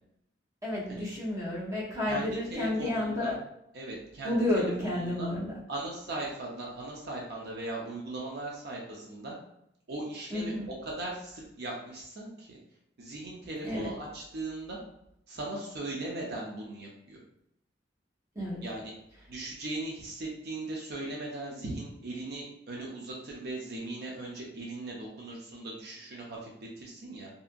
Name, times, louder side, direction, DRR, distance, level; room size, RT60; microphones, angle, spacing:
voice 1, 0.6-3.4 4.2-5.6 10.3-10.6 13.6-13.9 18.3-18.6, left 1 dB, 20° right, -6 dB, 0.8 m, -31 dB
voice 2, 2.1-3.3 3.7-5.3 5.7-9.3 9.9-10.5 10.9-12.6 13.0-14.8 15.3-17.2 18.6-18.9 19.3-27.3, right 2 dB, 60° right, -2 dB, 0.5 m, -38 dB
2.7 x 2.4 x 2.5 m, 0.78 s
head